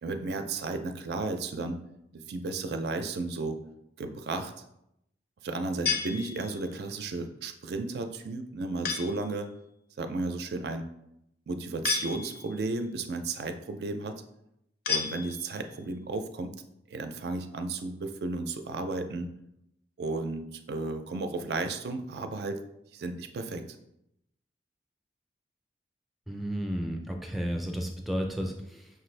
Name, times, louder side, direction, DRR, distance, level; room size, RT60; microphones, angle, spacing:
voice 1, 0.0-1.8 2.1-3.6 4.0-4.5 5.4-9.5 10.0-10.8 11.5-14.2 14.9-16.5 16.9-19.3 20.0-22.6 22.9-23.6, right 3 dB, 70° right, 7 dB, 0.4 m, -33 dB
sound 1, 5.9-6.8 8.8-9.3 11.8-12.7 14.9-15.7, left 6 dB, 55° left, 0.5 m, -33 dB
voice 2, 26.3-28.9, equal, ahead, 2 dB, 0.4 m, -32 dB
5.8 x 2.5 x 3.2 m, 0.81 s
head